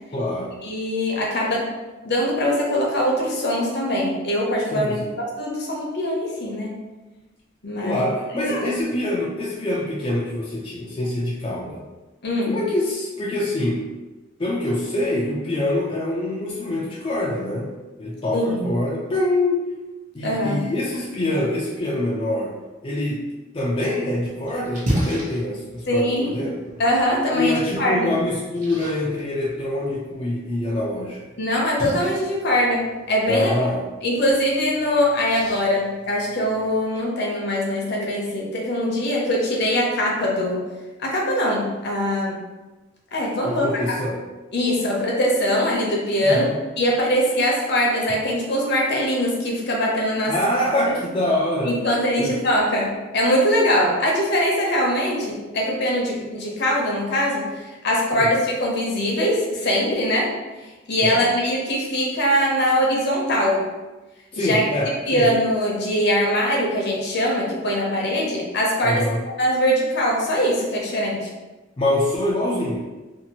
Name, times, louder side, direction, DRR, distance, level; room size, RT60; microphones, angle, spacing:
voice 1, 0.1-0.6 4.7-5.1 7.8-11.8 12.5-13.9 14.4-17.7 18.0-19.6 20.1-22.6 22.8-23.2 23.5-26.6 27.3-31.2 33.3-33.8 43.4-44.2 46.2-46.6 50.3-51.8 52.2-52.4 58.1-58.3 61.0-61.3 64.3-65.3 68.8-69.2 71.8-72.9, left 1 dB, 25° left, -5 dB, 0.4 m, -25 dB
voice 2, 0.6-1.7 2.0-5.0 5.4-6.8 7.6-8.0 8.4-8.6 12.2-12.6 18.3-18.7 20.2-20.6 25.9-26.3 26.8-28.1 31.4-33.5 34.0-40.6 41.0-42.4 43.1-43.7 44.5-46.5 46.8-50.3 50.9-51.0 51.6-57.5 57.8-60.3 60.9-63.7 64.4-64.6 65.1-69.0 69.4-71.3, equal, 55° left, -2 dB, 0.7 m, -22 dB
Splash splatter, 23.8-36.8, equal, 40° right, 0.8 m, -35 dB
2.7 x 2.5 x 2.8 m, 1.2 s
head